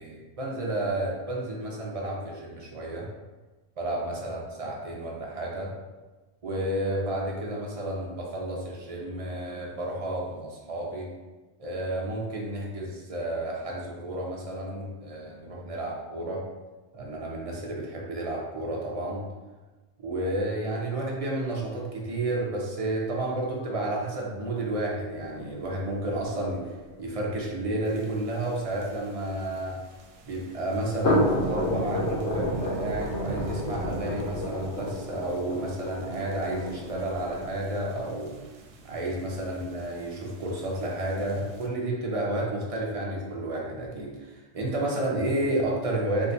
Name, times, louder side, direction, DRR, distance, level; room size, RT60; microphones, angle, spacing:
voice 1, 0.0-3.1 3.8-5.7 6.4-11.1 11.6-16.4 16.9-19.2 20.0-26.6 27.0-29.8 30.2-38.3 38.8-46.3, right 1 dB, 40° right, -2 dB, 0.6 m, -31 dB
sound 1, 25.1-29.7 30.8-37.6, left 1 dB, 70° left, 0.9 m, -31 dB
sound 2, 27.8-41.7, right 3 dB, 90° right, 0.9 m, -42 dB
3.7 x 2.7 x 2.6 m, 1.2 s
omnidirectional pair, 1.2 m